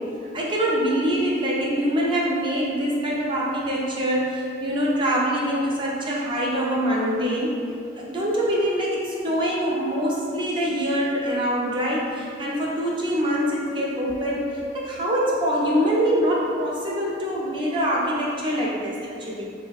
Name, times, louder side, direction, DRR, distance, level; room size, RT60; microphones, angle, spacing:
voice 1, 0.3-7.6 7.9-19.4, equal, 25° right, -4 dB, 0.4 m, -24 dB
3.1 x 2.6 x 2.3 m, 2.5 s
head